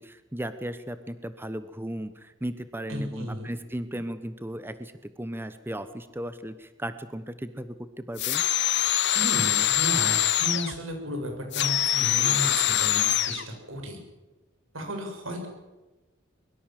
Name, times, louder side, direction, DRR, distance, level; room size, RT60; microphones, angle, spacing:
voice 1, 0.0-8.4, right 1 dB, 10° right, 11 dB, 1.0 m, -36 dB
voice 2, 2.9-3.5 9.1-14.0 14.7-15.5, equal, 80° right, 4 dB, 6.9 m, -34 dB
sound 1, 8.2-10.8 11.5-13.4, left 12 dB, 60° left, 1.3 m, -24 dB
23.5 x 22.5 x 7.6 m, 1.1 s
head